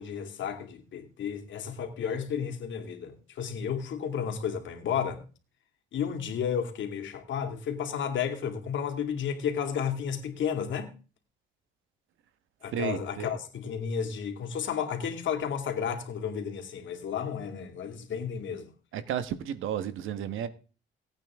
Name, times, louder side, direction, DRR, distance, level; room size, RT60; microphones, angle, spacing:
voice 1, 0.0-5.2 5.9-10.9 12.6-18.7, left 7 dB, 70° left, 2.6 m, -32 dB
voice 2, 12.7-13.4 18.9-20.5, right 9 dB, 85° right, 1.5 m, -33 dB
18.0 x 8.9 x 3.7 m
cardioid pair, 90°, 20 cm